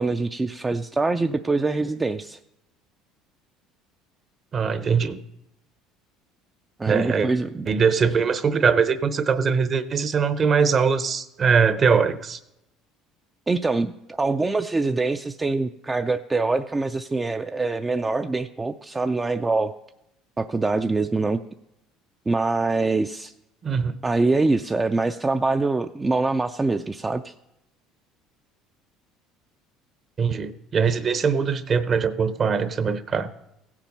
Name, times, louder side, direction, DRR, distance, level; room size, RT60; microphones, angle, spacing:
voice 1, 0.0-2.4 6.8-7.7 13.5-19.7 20.4-21.4 22.3-23.3 24.0-27.3, right 3 dB, 15° right, 7 dB, 0.4 m, -24 dB
voice 2, 4.5-5.2 6.8-7.3 7.7-12.4 23.6-23.9 30.2-33.3, right 6 dB, 35° right, 13 dB, 0.8 m, -22 dB
16.0 x 7.4 x 5.4 m, 0.86 s
cardioid pair, 120°, 0 cm